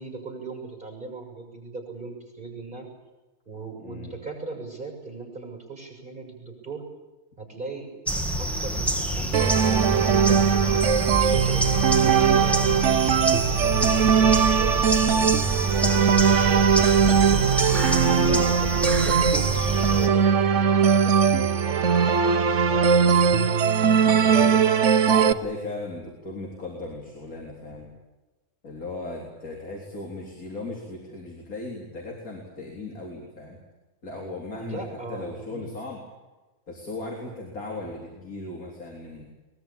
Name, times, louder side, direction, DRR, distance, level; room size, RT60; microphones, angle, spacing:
voice 1, 0.0-2.9 3.5-6.9 7.4-7.9 8.4-12.7 13.5-17.4 18.3-23.8 24.3-24.6 34.6-35.7, right 4 dB, 30° right, 3 dB, 7.4 m, -39 dB
voice 2, 3.8-4.2 24.1-24.6 25.0-27.9 28.6-33.6 34.0-36.0 36.7-39.2, left 2 dB, 70° left, -1 dB, 4.2 m, -37 dB
sound 1, 8.1-20.1, right 1 dB, ahead, 1.8 m, -27 dB
sound 2, 9.3-25.3, right 6 dB, 55° right, 1.2 m, -20 dB
22.5 x 21.5 x 8.8 m, 1.2 s
omnidirectional pair, 1.6 m